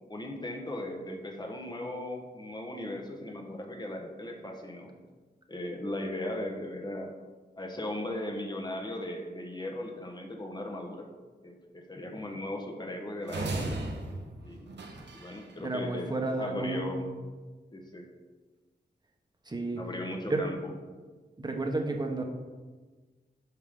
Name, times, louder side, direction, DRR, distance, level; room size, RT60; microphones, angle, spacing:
voice 1, 0.1-4.9 5.5-7.1 7.6-11.1 11.4-13.8 14.4-14.7 15.1-17.1 17.7-18.1 19.8-20.7, left 1 dB, 25° left, 2 dB, 1.2 m, -37 dB
sound 1, 13.3-15.5, right 2 dB, 90° right, 1.2 m, -36 dB
voice 2, 15.6-17.1 19.5-19.8 20.3-20.5 21.4-22.2, right 2 dB, 25° right, 3 dB, 1.1 m, -32 dB
11.5 x 5.6 x 3.7 m, 1.3 s
wide cardioid pair, 130°, 18 cm